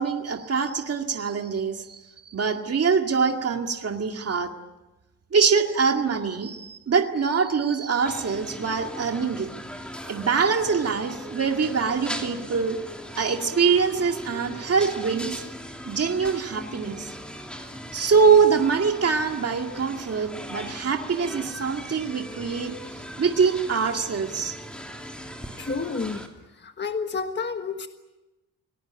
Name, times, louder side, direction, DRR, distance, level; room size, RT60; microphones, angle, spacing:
voice 1, 0.0-2.0 2.3-4.5 5.3-9.5 10.1-12.8 13.2-15.4 15.9-17.1 17.9-22.7 23.2-24.5, right 5 dB, 45° right, 3 dB, 2.2 m, -24 dB
sound 1, 8.1-26.3, equal, 5° left, 3.0 m, -39 dB
voice 2, 25.6-26.3 26.6-27.9, left 4 dB, 30° left, 6 dB, 1.5 m, -30 dB
29.0 x 19.0 x 9.0 m, 1.0 s
wide cardioid pair, 160°, 34 cm